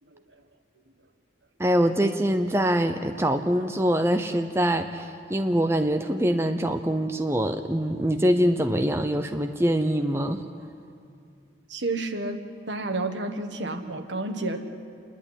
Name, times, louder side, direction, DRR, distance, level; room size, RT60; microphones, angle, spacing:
voice 1, 1.6-10.4, equal, 15° right, 6 dB, 0.6 m, -24 dB
voice 2, 11.7-12.4 12.7-14.6, right 2 dB, 70° right, 6 dB, 1.6 m, -30 dB
27.5 x 11.0 x 9.9 m, 2.3 s
head